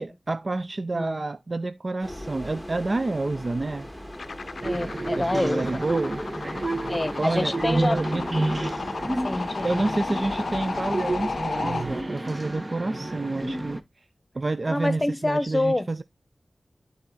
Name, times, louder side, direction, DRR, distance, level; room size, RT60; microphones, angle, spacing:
voice 1, 0.0-3.9 5.2-6.2 7.2-8.3 9.6-14.0 14.3-16.0, right 2 dB, 50° right, 0.5 m, -29 dB
sound 1, 2.0-12.0, left 1 dB, ahead, 1.7 m, -39 dB
sound 2, 4.1-11.8, left 4 dB, 85° left, 0.5 m, -34 dB
voice 2, 4.6-5.9 6.9-8.0 8.9-10.0 14.7-15.9, left 1 dB, 25° left, 1.1 m, -27 dB
sound 3, 4.6-13.8, right 2 dB, 35° right, 1.3 m, -30 dB
11.5 x 4.2 x 3.9 m
cardioid pair, 50°, 0 cm